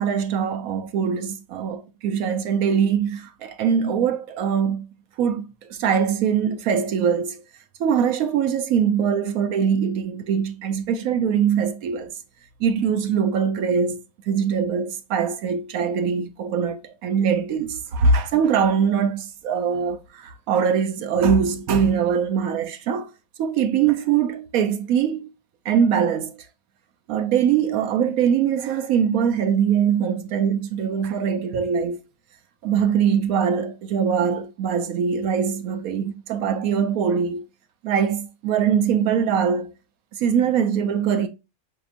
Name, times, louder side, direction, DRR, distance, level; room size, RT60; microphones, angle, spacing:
voice 1, 0.0-4.9 5.2-7.4 7.8-12.2 12.6-23.1 23.4-25.3 25.6-26.4 27.1-32.0 32.6-37.5 37.8-39.7 40.1-41.3, right 7 dB, 85° right, 1.1 m, -22 dB
6.2 x 2.9 x 2.4 m
omnidirectional pair, 1.5 m